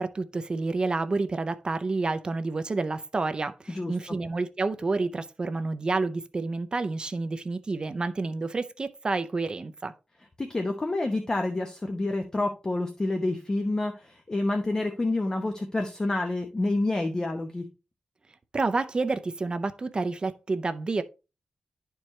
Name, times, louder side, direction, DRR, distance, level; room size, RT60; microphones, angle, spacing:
voice 1, 0.0-9.9 18.5-21.0, right 3 dB, 35° right, 0.5 m, -29 dB
voice 2, 10.4-17.6, left 2 dB, 25° left, 0.8 m, -28 dB
11.5 x 4.6 x 3.1 m
wide cardioid pair, 150°, 3 cm